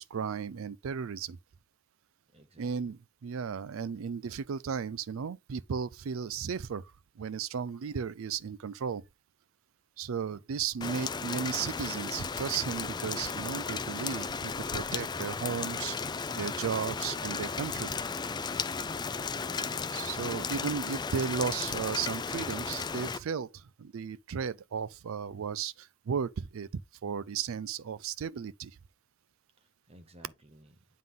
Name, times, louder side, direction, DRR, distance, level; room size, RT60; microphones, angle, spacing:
voice 1, 0.0-1.4 2.6-9.0 10.0-16.0 16.3-18.0 19.9-26.7 27.0-28.8, right 6 dB, 70° right, 0.4 m, -35 dB
voice 2, 2.3-2.9 10.3-10.4 19.3-19.9 29.6-30.9, right 1 dB, 30° right, 0.7 m, -56 dB
Rain, 10.8-23.2, left 5 dB, 20° left, 0.4 m, -35 dB
9.3 x 3.7 x 3.7 m
head